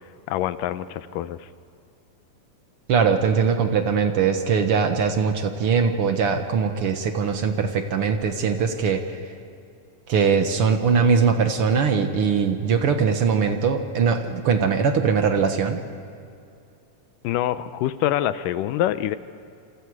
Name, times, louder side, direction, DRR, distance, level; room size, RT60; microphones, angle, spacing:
voice 1, 0.3-1.5 17.2-19.2, left 12 dB, 90° left, 13 dB, 2.4 m, -25 dB
voice 2, 2.9-9.0 10.1-15.8, right 6 dB, 55° right, 6 dB, 1.7 m, -21 dB
28.0 x 27.0 x 4.8 m, 2.4 s
omnidirectional pair, 3.7 m